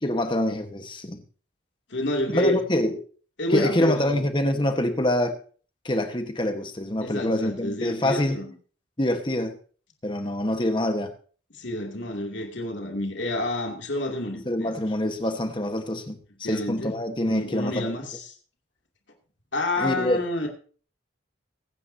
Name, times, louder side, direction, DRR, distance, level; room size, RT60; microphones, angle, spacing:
voice 1, 0.0-1.2 2.3-3.0 3.5-5.4 5.8-8.4 9.0-9.6 10.0-11.1 14.4-17.9 19.8-20.2, left 1 dB, 25° left, 6 dB, 1.3 m, -25 dB
voice 2, 1.9-2.6 3.4-4.2 7.0-8.5 11.5-14.7 16.4-17.0 17.2-18.3 19.5-20.5, left 1 dB, 70° left, 1 dB, 2.7 m, -29 dB
23.0 x 9.6 x 2.8 m, 0.41 s
head